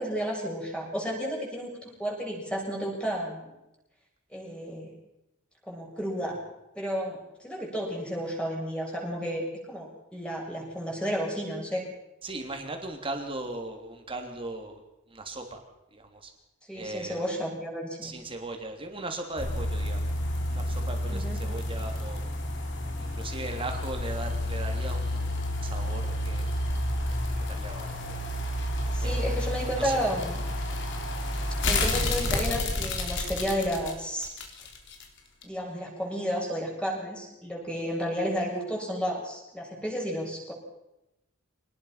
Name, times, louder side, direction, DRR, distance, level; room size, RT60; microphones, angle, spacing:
voice 1, 0.0-3.5 4.3-4.9 5.7-6.4 6.7-11.8 16.7-18.2 21.1-21.4 28.9-30.4 31.6-34.3 35.4-40.5, equal, 5° left, -2 dB, 7.1 m, -32 dB
voice 2, 12.2-14.8 15.1-15.6 15.9-16.3 16.7-17.2 18.0-20.1 20.5-22.2 23.0-25.3 25.6-26.5 27.5-28.3 29.0-29.3 29.6-30.0, right 2 dB, 25° right, 4 dB, 3.3 m, -38 dB
sound 1, 19.4-35.0 35.4-35.5, left 1 dB, 55° left, 3.7 m, -30 dB
25.5 x 20.0 x 5.9 m, 0.91 s
head